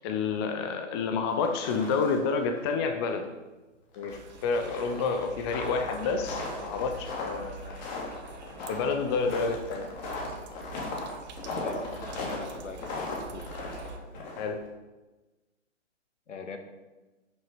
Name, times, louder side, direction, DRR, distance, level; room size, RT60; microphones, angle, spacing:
voice 1, 0.0-3.3 4.0-7.8 8.7-9.9 14.4-14.6, left 5 dB, 20° left, 5 dB, 0.7 m, -29 dB
sound 1, 1.3-2.3 2.6-2.7 3.1-3.2 3.9-14.7, left 3 dB, 35° left, 2.9 m, -37 dB
sound 2, 4.1-14.0, right 4 dB, 35° right, 1.0 m, -46 dB
voice 2, 11.6-13.5 16.3-16.6, left 4 dB, 70° left, 6 dB, 1.9 m, -42 dB
11.0 x 6.5 x 6.1 m, 1.2 s
hypercardioid pair, 140°, 38 cm